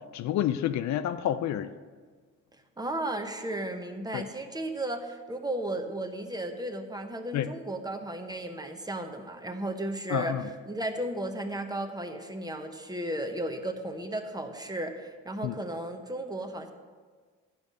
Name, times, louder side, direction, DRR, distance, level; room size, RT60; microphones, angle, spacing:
voice 1, 0.1-1.7 4.1-4.2 7.3-7.5 10.1-10.4 15.4-15.6, left 11 dB, 65° left, 12 dB, 0.5 m, -29 dB
voice 2, 2.8-16.7, right 1 dB, 15° right, 5 dB, 0.9 m, -34 dB
11.0 x 5.2 x 6.3 m, 1.5 s
cardioid pair, 90°, 30 cm